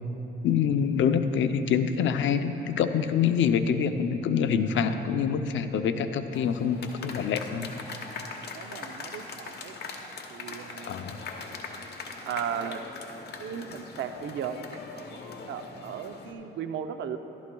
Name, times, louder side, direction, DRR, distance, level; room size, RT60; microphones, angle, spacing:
voice 1, 0.4-7.7 10.8-11.2, left 7 dB, 75° left, 8 dB, 0.6 m, -26 dB
sound 1, 6.3-16.3, left 4 dB, 55° left, 1.1 m, -41 dB
voice 2, 8.5-9.8 10.3-11.0 12.3-12.8 13.4-15.2 15.5-17.2, right 8 dB, 75° right, 8 dB, 0.6 m, -36 dB
14.5 x 12.5 x 2.3 m, 3.0 s
cardioid pair, 90°, 20 cm